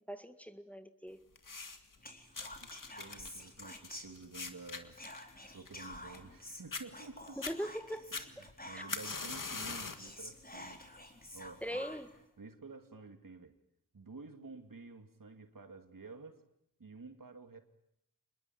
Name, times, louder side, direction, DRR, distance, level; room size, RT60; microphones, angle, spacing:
voice 1, 0.1-1.2 7.4-8.4 8.7-8.8 11.6-12.1, equal, 5° left, 1.8 m, -41 dB
sound 1, 1.4-2.0 2.3-6.4 6.7-6.8 7.3-7.6 8.1-10.1 10.5-10.9 11.7-11.8, left 4 dB, 65° left, 2.1 m, -42 dB
Whispering, 2.0-4.5 4.9-9.3 9.7-9.8 10.0-12.2, left 1 dB, 25° left, 4.2 m, -49 dB
voice 2, 2.6-5.0 5.5-7.4 8.1-10.8 11.3-11.8 12.4-13.6 13.9-16.4 16.8-17.6, right 4 dB, 70° right, 2.5 m, -51 dB
26.5 x 21.0 x 9.3 m
cardioid pair, 45°, 34 cm